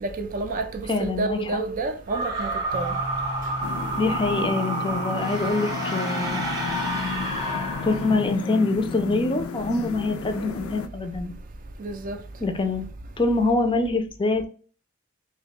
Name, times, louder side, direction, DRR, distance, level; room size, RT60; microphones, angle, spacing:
voice 1, 0.0-3.0 11.8-12.2, right 3 dB, 40° right, 0.4 m, -29 dB
voice 2, 0.9-1.6 4.0-6.5 7.8-11.3 12.4-12.9 13.2-14.5, left 2 dB, 25° left, 0.4 m, -25 dB
sound 1, 2.1-8.5, right 1 dB, 20° right, 0.8 m, -30 dB
sound 2, 2.7-9.5, equal, 85° right, 0.7 m, -38 dB
sound 3, 3.6-10.9, left 6 dB, 80° left, 0.4 m, -33 dB
2.8 x 2.2 x 4.0 m
head